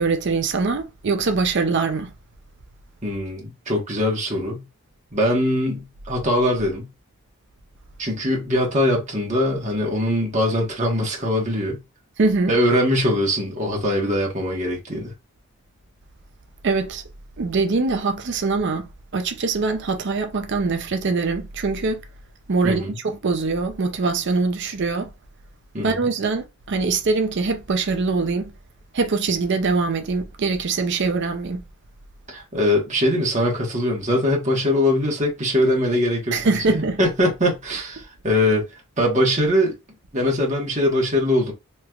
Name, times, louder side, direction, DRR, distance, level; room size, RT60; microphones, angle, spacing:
voice 1, 0.0-2.1 12.2-12.5 16.6-17.0 17.4-22.0 22.5-25.1 25.8-28.5 28.9-31.6 36.3-37.0, right 4 dB, 55° right, 0.5 m, -23 dB
voice 2, 3.0-4.7 5.1-6.9 8.0-11.8 12.5-15.1 22.6-23.0 25.7-26.1 32.3-39.8 40.1-41.5, left 1 dB, 35° right, 1.2 m, -22 dB
3.2 x 3.0 x 2.3 m
head